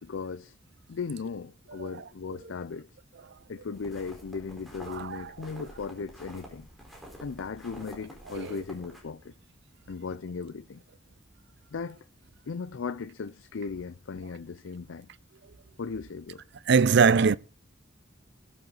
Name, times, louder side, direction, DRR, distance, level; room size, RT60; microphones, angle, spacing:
voice 1, 0.0-0.5 0.9-2.9 3.5-6.7 7.2-9.3 9.9-10.8 11.7-12.0 12.5-15.1 15.8-16.4, left 5 dB, 80° left, 0.5 m, -37 dB
sound 1, 3.7-9.0, right 1 dB, ahead, 4.4 m, -48 dB
voice 2, 4.9-5.2 8.3-8.6 16.7-17.4, right 5 dB, 60° right, 0.5 m, -22 dB
20.5 x 7.9 x 4.0 m
head